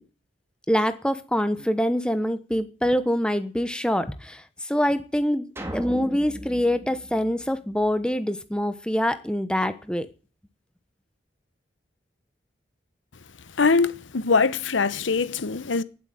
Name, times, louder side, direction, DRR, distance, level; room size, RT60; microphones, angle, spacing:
voice 1, 0.7-10.1, equal, 5° left, 1.1 m, -25 dB
sound 1, 5.6-8.0, equal, 15° right, 1.9 m, -37 dB
voice 2, 13.6-15.8, left 4 dB, 85° left, 0.9 m, -22 dB
18.0 x 7.9 x 7.8 m
head